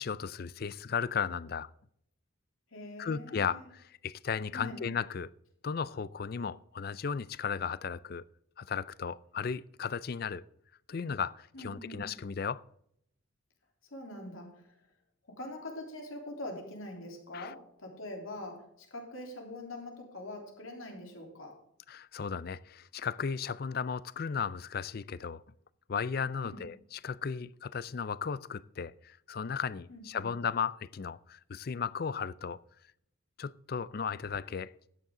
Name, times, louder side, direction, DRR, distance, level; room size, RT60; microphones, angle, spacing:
voice 1, 0.0-1.7 3.0-5.3 5.6-8.2 8.6-10.5 10.9-12.6 17.3-17.5 21.9-25.4 25.9-32.6 33.4-34.7, left 6 dB, 50° left, 0.4 m, -35 dB
voice 2, 2.7-3.7 4.5-4.8 11.5-12.1 13.9-14.7 15.3-21.6 26.4-26.7 29.9-30.3, left 1 dB, 85° left, 3.4 m, -44 dB
12.5 x 9.3 x 3.8 m
head